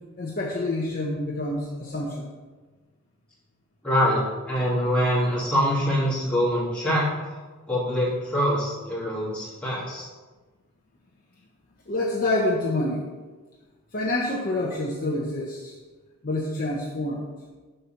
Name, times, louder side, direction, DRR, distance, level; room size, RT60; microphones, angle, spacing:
voice 1, 0.2-2.3 11.9-13.0 13.9-15.7 16.2-17.3, left 1 dB, 40° left, -2 dB, 0.7 m, -27 dB
voice 2, 3.8-7.1 7.7-10.1, equal, 5° left, -8 dB, 2.1 m, -24 dB
6.6 x 4.2 x 5.7 m, 1.3 s
head